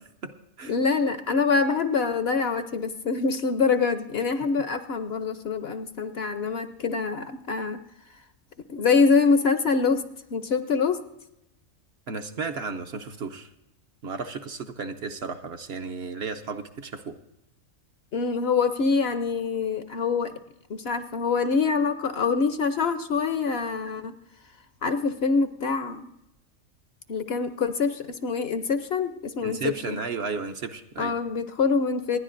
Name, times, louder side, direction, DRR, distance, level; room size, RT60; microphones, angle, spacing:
voice 1, 0.0-0.7 12.1-13.5 14.0-17.2 29.4-31.1, right 4 dB, 60° right, 6 dB, 0.9 m, -34 dB
voice 2, 0.7-7.8 8.7-10.1 10.3-11.0 18.1-20.3 20.7-24.1 24.8-26.1 27.1-30.0 31.0-32.2, left 5 dB, 60° left, 10 dB, 0.8 m, -25 dB
26.5 x 10.5 x 2.5 m, 0.88 s
omnidirectional pair, 1.4 m